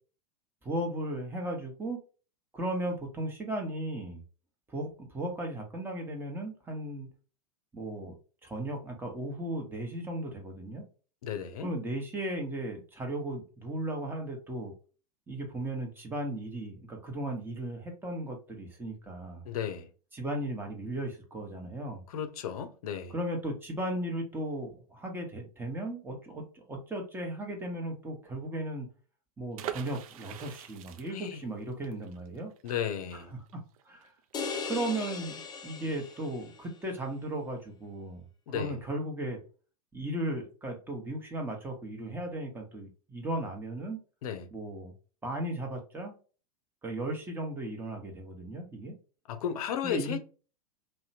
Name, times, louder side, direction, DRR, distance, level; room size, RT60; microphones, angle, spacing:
voice 1, 0.6-2.0 2.5-4.2 4.7-7.1 7.7-8.1 8.4-10.8 11.6-14.7 15.3-19.4 20.1-22.0 23.1-28.9 29.4-32.5 33.3-34.1 34.6-35.3 35.6-39.4 39.9-44.0 44.5-44.9 45.2-46.1 46.8-49.0 49.8-50.2, right 1 dB, 10° right, 0.9 m, -36 dB
voice 2, 11.2-11.7 19.4-19.9 22.1-23.1 31.1-31.4 32.6-33.3 38.5-38.7 44.2-44.5 49.3-50.2, left 8 dB, 65° left, 0.6 m, -34 dB
sound 1, 29.5-35.2 35.5-35.6 35.8-36.1, right 10 dB, 60° right, 0.4 m, -44 dB
sound 2, 34.3-36.7, left 5 dB, 20° left, 0.4 m, -38 dB
2.7 x 2.1 x 2.7 m
hypercardioid pair, 100°, 20 cm